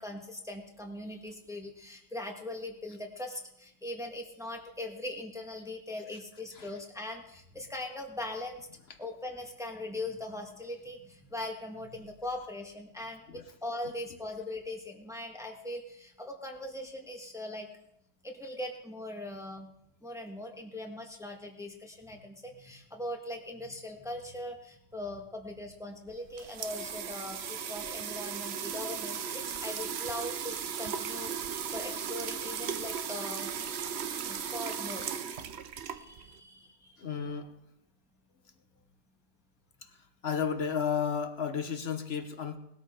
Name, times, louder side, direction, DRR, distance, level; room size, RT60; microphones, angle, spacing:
voice 1, 0.0-8.7 9.0-17.7 18.2-19.7 20.0-33.7 34.2-35.0 35.7-37.0, left 1 dB, ahead, 1 dB, 1.6 m, -40 dB
sound 1, 26.1-36.4, right 7 dB, 55° right, 0.8 m, -36 dB
voice 2, 37.0-37.5 39.8-40.0 40.2-42.6, left 7 dB, 40° left, 8 dB, 1.1 m, -33 dB
19.5 x 13.5 x 3.8 m, 0.78 s
omnidirectional pair, 1.9 m